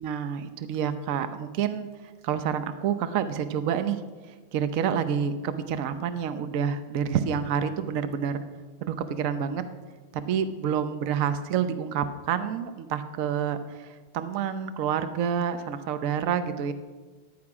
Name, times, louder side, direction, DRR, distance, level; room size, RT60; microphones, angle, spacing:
voice 1, 0.0-1.9 2.2-4.0 4.5-8.4 8.8-9.6 10.3-16.7, right 8 dB, 75° right, 10 dB, 0.7 m, -28 dB
14.5 x 10.5 x 4.9 m, 1.4 s
omnidirectional pair, 2.4 m